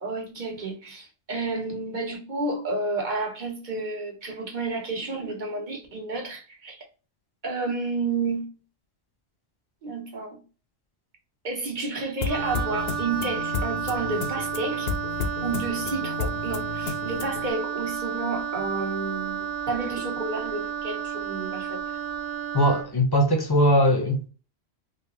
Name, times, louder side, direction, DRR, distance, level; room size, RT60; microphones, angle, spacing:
voice 1, 0.0-6.8 7.4-8.5 9.8-10.4 11.4-14.9 15.4-21.8, right 3 dB, 45° right, 1.2 m, -31 dB
sound 1, 12.2-17.5, left 6 dB, 70° left, 0.8 m, -33 dB
Wind instrument woodwind instrument, 12.3-22.9, right 7 dB, 60° right, 0.8 m, -32 dB
voice 2, 22.5-24.3, equal, 25° left, 0.7 m, -20 dB
3.4 x 2.8 x 3.0 m
omnidirectional pair, 1.1 m